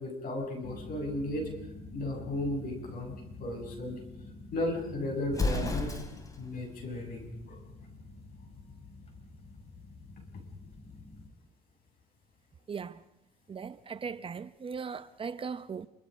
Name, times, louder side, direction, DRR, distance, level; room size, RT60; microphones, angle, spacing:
voice 1, 0.0-1.5 1.9-4.0 4.5-5.9 6.4-7.6, left 1 dB, 60° left, 7.8 m, -35 dB
sound 1, 0.6-11.3, left 3 dB, 40° left, 4.9 m, -48 dB
Explosion, 5.3-6.4, left 2 dB, 20° left, 3.3 m, -31 dB
voice 2, 12.7-13.0 13.5-15.9, right 6 dB, 30° right, 0.8 m, -38 dB
27.0 x 25.5 x 5.3 m
cardioid pair, 110°, 17 cm